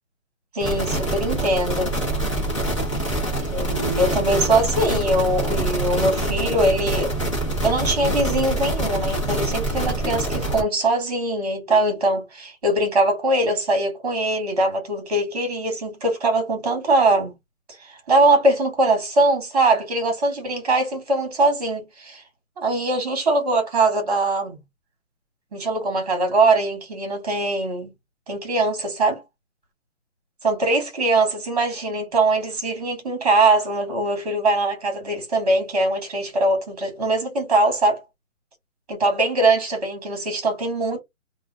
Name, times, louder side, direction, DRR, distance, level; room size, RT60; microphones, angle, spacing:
voice 1, 0.5-1.9 3.5-7.1 7.6-17.3 17.8-22.2 22.6-24.6 25.5-27.9 28.3-29.2 30.4-38.0 38.9-41.0, right 2 dB, 30° right, 1.3 m, -22 dB
sound 1, 0.6-10.6, right 1 dB, 25° left, 0.8 m, -25 dB
2.4 x 2.4 x 3.2 m
hypercardioid pair, 175°, 41 cm